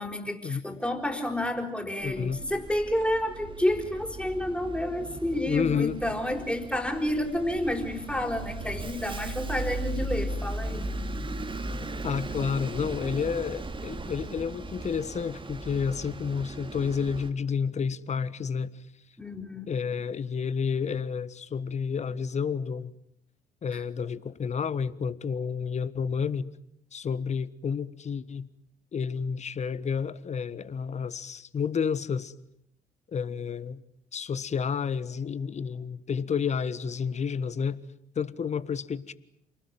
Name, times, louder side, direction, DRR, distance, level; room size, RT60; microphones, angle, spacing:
voice 1, 0.0-10.8 19.2-19.8, left 1 dB, 5° left, 4.8 m, -30 dB
voice 2, 2.0-2.4 5.5-6.0 12.0-18.7 19.7-22.9 23.6-26.5 26.9-28.5 28.9-32.3 33.1-33.8 34.1-37.8 38.1-39.1, left 6 dB, 35° left, 1.4 m, -30 dB
Bus, 2.0-17.3, right 2 dB, 25° right, 2.6 m, -37 dB
28.5 x 20.0 x 9.2 m
figure-of-eight pair, 50°, 19 cm